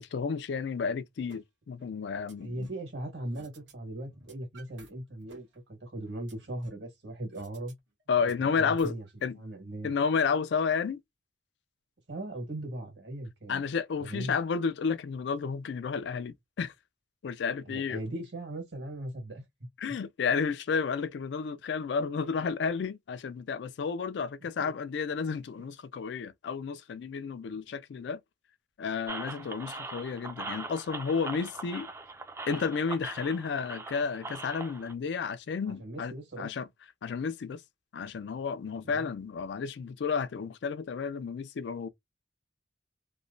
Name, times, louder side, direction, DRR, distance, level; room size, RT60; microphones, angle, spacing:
voice 1, 0.0-2.7 8.1-9.0 9.2-9.4 9.8-11.0 13.5-16.7 17.2-18.0 19.8-28.2 28.8-31.9 32.5-36.7 37.0-37.6 37.9-41.9, left 5 dB, 70° left, 0.3 m, -31 dB
sound 1, 1.3-1.4 1.8-2.8 3.3-3.7 4.0-4.9 5.2-6.9 7.3-7.7 8.0-9.3, right 3 dB, 90° right, 1.1 m, -55 dB
voice 2, 2.4-7.7 8.6-9.0 9.4-9.9 12.1-13.6 14.0-14.3 17.6-19.4 22.4-22.5 24.6-24.7 35.7-36.5 38.8-39.1, right 1 dB, 70° right, 1.5 m, -39 dB
sound 2, 29.1-34.9, right 3 dB, 15° right, 0.4 m, -41 dB
3.0 x 2.1 x 2.5 m
head